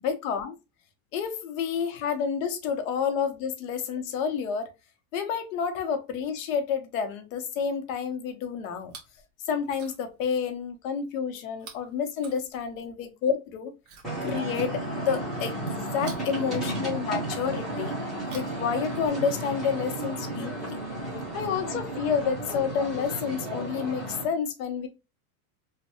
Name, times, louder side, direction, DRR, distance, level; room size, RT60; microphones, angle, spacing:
voice 1, 0.0-0.6 1.1-4.7 5.1-8.9 9.5-13.7 14.2-18.0 18.3-20.8 21.3-24.9, left 6 dB, 70° left, 0.8 m, -29 dB
Chewing mastication, 8.7-9.2 9.6-10.2 11.5-12.9 13.8-15.1 15.9-17.2 18.1-19.5 20.4-20.5, right 5 dB, 45° right, 1.2 m, -50 dB
sound 1, 14.0-24.2, right 1 dB, ahead, 1.0 m, -33 dB
3.2 x 2.2 x 2.8 m
supercardioid pair, 175°, 43 cm